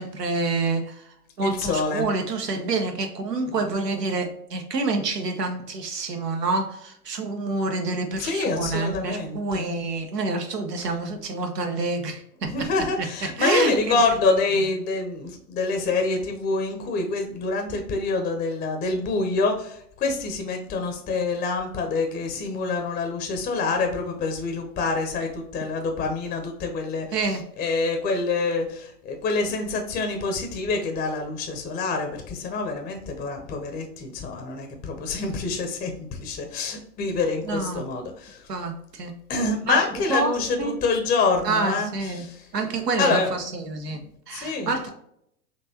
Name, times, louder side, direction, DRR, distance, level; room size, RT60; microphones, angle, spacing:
voice 1, 0.0-12.7 13.2-14.0 27.1-27.4 37.5-37.8 38.5-39.1 39.7-39.8 40.1-40.3 40.6-40.7 41.4-42.2 42.5-44.0 44.3-44.9, right 3 dB, 90° right, 4 dB, 0.9 m, -27 dB
voice 2, 1.4-2.1 8.2-9.8 12.4-38.5 39.3-42.5 43.0-43.3 43.7-44.9, left 3 dB, 20° left, 4 dB, 0.6 m, -26 dB
4.4 x 2.9 x 2.7 m, 0.72 s
hypercardioid pair, 105°, 47 cm